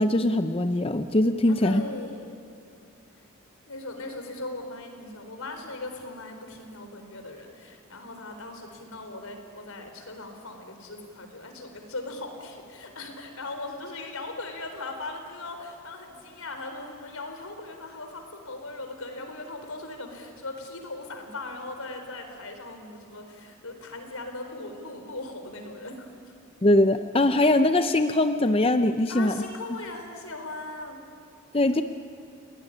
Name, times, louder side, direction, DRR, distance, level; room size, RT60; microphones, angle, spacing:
voice 1, 0.0-1.8 26.6-29.4 31.5-31.8, left 1 dB, 25° left, 9 dB, 0.6 m, -22 dB
voice 2, 1.5-2.4 3.7-26.3 29.1-31.0, left 2 dB, 85° left, 5 dB, 4.3 m, -39 dB
30.0 x 19.0 x 10.0 m, 2.4 s
head